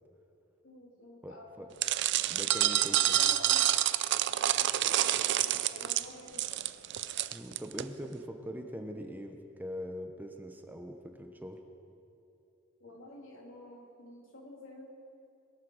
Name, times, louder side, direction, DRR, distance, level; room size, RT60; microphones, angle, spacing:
voice 1, 0.6-1.8 2.9-3.8 4.4-6.6 8.0-8.1 12.8-14.9, left 1 dB, 75° left, -1 dB, 2.8 m, -50 dB
voice 2, 1.2-1.7 2.3-3.2 7.3-11.6, equal, 10° right, 4 dB, 0.8 m, -42 dB
sound 1, 1.8-7.8, right 12 dB, 60° right, 0.4 m, -28 dB
21.0 x 7.5 x 6.3 m, 2.6 s
head